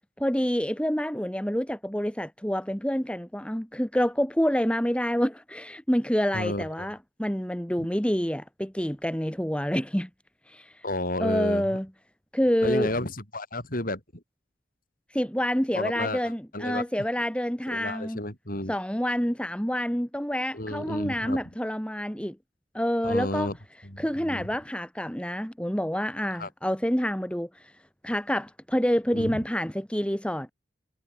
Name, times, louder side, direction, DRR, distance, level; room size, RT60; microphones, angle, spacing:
voice 1, 0.2-10.1 10.5-10.7 11.2-11.9 12.3-12.9 15.1-18.2 18.7-22.4 22.7-23.5 24.0-27.5 28.0-30.5, equal, 5° left, 3.0 m, -27 dB
voice 2, 6.3-6.7 7.8-7.9 10.8-11.8 12.6-14.2 15.7-16.2 16.5-16.8 17.7-18.8 20.5-21.4 23.0-23.6 23.8-24.5 26.4-26.5 29.1-29.4, left 1 dB, 55° left, 7.9 m, -32 dB
head